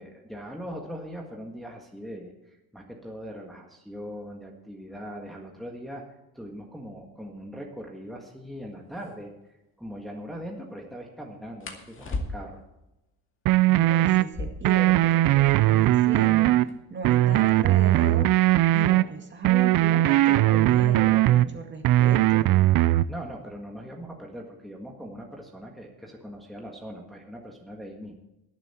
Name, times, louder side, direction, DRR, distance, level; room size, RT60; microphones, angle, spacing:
voice 1, 0.0-6.0 6.3-12.6 23.1-28.2, equal, ahead, 0 dB, 1.7 m, -40 dB
sound 1, 8.4-8.5 8.9-9.1 11.6-12.7 14.2-15.8 16.1-16.2 16.4-17.0 17.6-20.2 21.2-21.5 21.9-22.4 22.7-23.4, left 2 dB, 30° left, 2.2 m, -38 dB
sound 2, 13.5-14.2 14.6-16.7 17.0-19.0 19.4-21.5 21.8-23.1, right 16 dB, 55° right, 0.5 m, -19 dB
voice 2, 13.7-16.5 16.9-18.3 18.7-22.5, right 3 dB, 25° right, 3 dB, 2.2 m, -35 dB
22.0 x 7.5 x 4.4 m, 0.92 s
cardioid pair, 130°, 41 cm